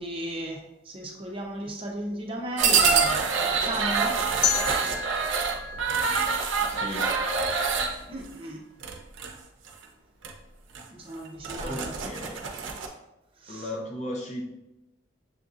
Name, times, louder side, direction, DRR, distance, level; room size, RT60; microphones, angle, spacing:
voice 1, 0.0-4.2 8.1-8.6 10.9-11.9 13.4-13.7, right 1 dB, 30° right, 0 dB, 0.6 m, -35 dB
sound 1, 2.6-7.9 8.8-9.3 9.7-9.8 10.2-10.3 10.7-10.8 11.3-12.9, right 5 dB, 85° right, 0.5 m, -26 dB
sound 2, 4.4-7.4, left 6 dB, 85° left, 0.6 m, -31 dB
voice 2, 6.7-7.1 11.6-12.4 13.5-14.5, left 1 dB, 35° left, 0 dB, 0.6 m, -35 dB
6.8 x 2.6 x 2.4 m, 0.92 s
head